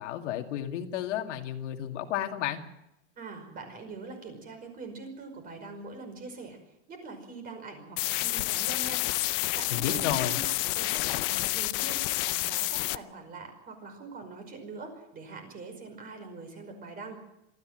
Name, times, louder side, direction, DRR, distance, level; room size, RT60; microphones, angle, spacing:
voice 1, 0.0-2.6 9.7-10.4, left 11 dB, 80° left, 4 dB, 2.5 m, -32 dB
voice 2, 3.2-9.0 9.5-17.2, right 3 dB, 25° right, 6 dB, 5.4 m, -43 dB
sound 1, 8.0-13.0, left 21 dB, 50° left, 0.7 m, -29 dB
23.5 x 14.5 x 7.7 m, 0.88 s
supercardioid pair, 160°, 35 cm